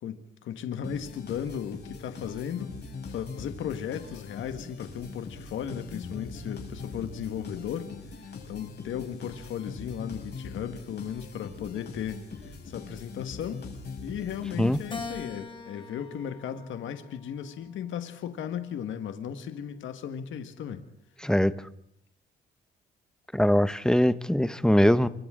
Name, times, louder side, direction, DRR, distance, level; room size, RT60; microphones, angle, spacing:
voice 1, 0.0-2.7 3.1-13.6 14.0-20.8, left 8 dB, 75° left, 8 dB, 1.7 m, -36 dB
sound 1, 0.8-15.4, left 4 dB, 55° left, 5.9 m, -42 dB
Keyboard (musical), 14.9-17.4 18.0-19.2, left 4 dB, 25° left, 2.2 m, -43 dB
voice 2, 23.3-25.1, equal, 5° left, 14 dB, 0.9 m, -22 dB
28.5 x 24.5 x 3.8 m, 0.73 s
cardioid pair, 90°, 20 cm